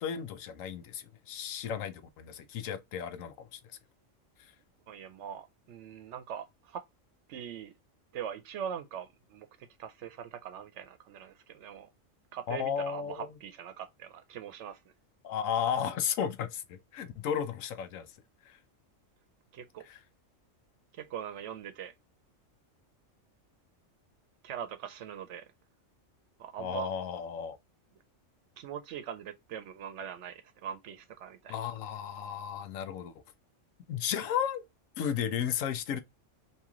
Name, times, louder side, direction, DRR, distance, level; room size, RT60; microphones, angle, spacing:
voice 1, 0.0-3.6 4.4-4.5 12.5-13.3 15.2-18.1 18.4-18.6 19.9-20.0 26.6-27.6 31.5-33.1 33.9-34.6 35.0-36.0, left 8 dB, 85° left, 1.0 m, -34 dB
voice 2, 4.9-6.8 7.3-7.7 8.1-11.9 12.3-14.8 19.5-19.9 20.9-21.9 24.4-25.5 26.4-26.9 28.6-31.6, right 8 dB, 70° right, 0.9 m, -42 dB
3.0 x 2.8 x 3.6 m
omnidirectional pair, 1.3 m